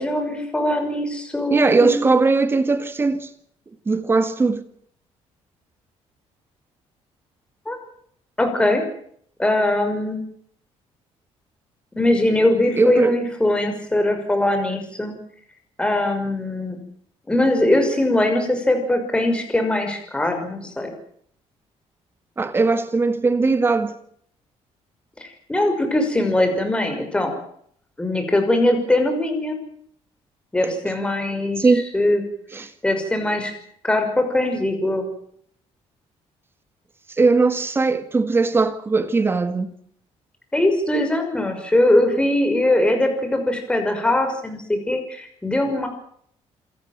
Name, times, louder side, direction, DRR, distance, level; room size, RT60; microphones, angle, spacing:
voice 1, 0.0-2.0 7.7-7.8 8.4-8.8 9.4-10.2 12.0-15.1 15.8-16.8 17.3-20.9 25.5-27.3 28.0-29.6 30.5-31.7 31.9-32.2 32.8-33.5 33.8-35.0 40.5-45.9, left 1 dB, 10° left, 6.0 m, -21 dB
voice 2, 1.5-3.3 3.9-4.6 12.7-13.2 22.4-23.9 30.6-30.7 31.6-31.8 32.5-32.7 37.2-39.7, right 3 dB, 20° right, 2.0 m, -19 dB
27.5 x 14.0 x 9.3 m
cardioid pair, 155°, 11 cm